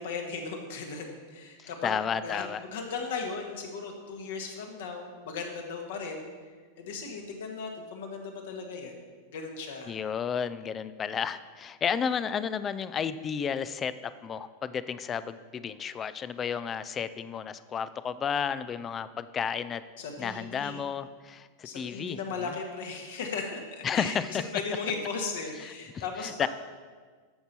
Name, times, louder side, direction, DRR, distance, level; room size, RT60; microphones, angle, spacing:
voice 1, 0.0-1.9 2.2-6.3 6.8-9.0 9.3-9.9 20.0-20.9 21.6-26.5, left 4 dB, 55° left, 3 dB, 1.6 m, -37 dB
voice 2, 1.6-2.6 9.9-19.8 20.2-22.5 23.8-24.5 25.6-26.5, left 7 dB, 25° left, 15 dB, 0.4 m, -32 dB
13.5 x 6.7 x 4.3 m, 1.5 s
figure-of-eight pair, 90°, 0 cm